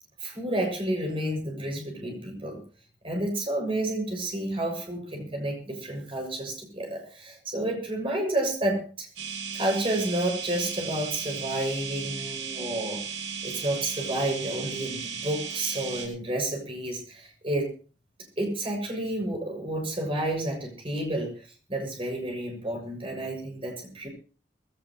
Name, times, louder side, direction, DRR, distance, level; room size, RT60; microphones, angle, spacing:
voice 1, 0.2-2.6 3.0-9.1 9.5-17.7 18.4-24.1, right 1 dB, 30° right, 2 dB, 6.9 m, -30 dB
sound 1, 9.2-16.1, right 6 dB, 80° right, 7.5 m, -36 dB
20.5 x 17.5 x 3.2 m, 0.38 s
head